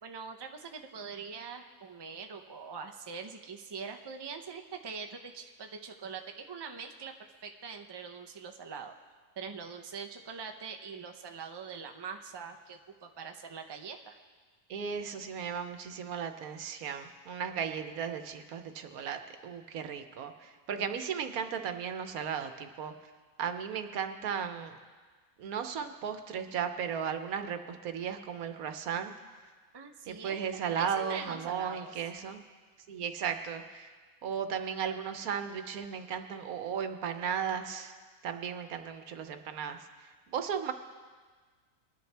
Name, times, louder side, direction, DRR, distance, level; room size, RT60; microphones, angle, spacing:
voice 1, 0.0-7.1 7.4-8.9 9.4-14.2 29.7-31.9, right 5 dB, 25° right, 5 dB, 0.5 m, -43 dB
voice 2, 14.7-22.9 23.4-24.8 25.4-29.1 30.1-32.4 32.9-33.9 34.2-37.9 38.2-40.7, right 7 dB, 85° right, 8 dB, 1.3 m, -35 dB
21.5 x 11.0 x 3.4 m, 1.5 s
omnidirectional pair, 1.5 m